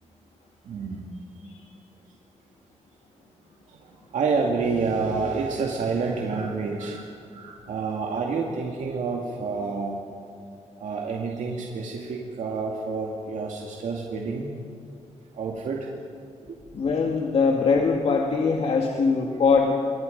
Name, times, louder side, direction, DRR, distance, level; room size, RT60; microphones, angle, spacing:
voice 1, 0.6-1.2 3.7-10.0 10.8-14.6 15.3-15.9 16.4-16.6, right 4 dB, 90° right, 0 dB, 2.3 m, -29 dB
voice 2, 16.7-19.7, left 5 dB, 55° left, 1 dB, 2.0 m, -22 dB
28.0 x 23.5 x 5.4 m, 2.6 s
wide cardioid pair, 160°, 12 cm